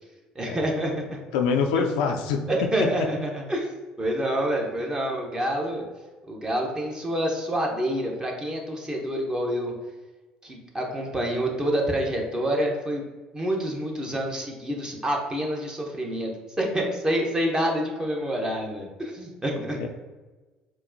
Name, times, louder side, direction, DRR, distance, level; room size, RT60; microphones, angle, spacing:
voice 1, 0.3-1.2 1.8-1.9 2.5-3.7 4.0-5.8 6.3-9.7 10.4-13.1 13.3-16.3 16.6-19.8, right 1 dB, 20° right, 0 dB, 0.9 m, -27 dB
voice 2, 1.3-3.1 19.8-19.9, left 6 dB, 75° left, 4 dB, 0.3 m, -26 dB
4.3 x 2.2 x 2.7 m, 1.2 s
hypercardioid pair, 60°, 4 cm